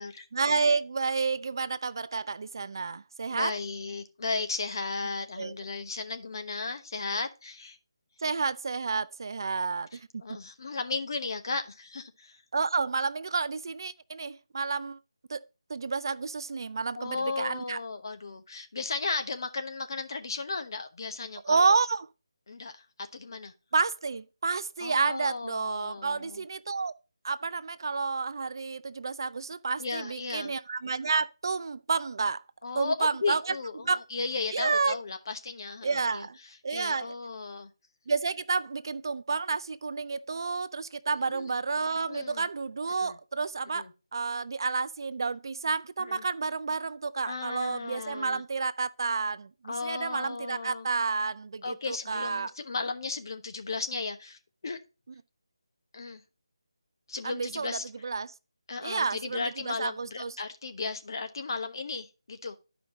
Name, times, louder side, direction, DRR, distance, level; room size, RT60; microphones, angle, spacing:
voice 1, 0.3-3.5 5.4-5.5 8.2-10.1 12.5-15.0 15.3-15.4 15.7-17.8 21.4-22.1 23.7-26.9 27.2-32.4 32.7-33.4 33.8-34.0 34.5-35.0 35.8-36.4 36.6-37.1 38.1-43.8 44.1-52.5 57.2-58.3 58.8-60.3, right 4 dB, 50° right, 0.4 m, -30 dB
voice 2, 3.3-7.8 9.9-12.4 17.0-21.8 22.5-22.8 23.1-23.5 24.8-26.4 29.8-30.5 32.6-37.7 41.2-41.6 42.1-42.5 43.0-43.2 43.7-43.9 46.0-46.2 47.2-48.4 49.7-50.9 51.6-54.8 55.9-56.2 57.1-57.8 58.7-62.5, left 4 dB, 50° left, 1.1 m, -35 dB
11.0 x 5.0 x 3.8 m
figure-of-eight pair, 160°, 3 cm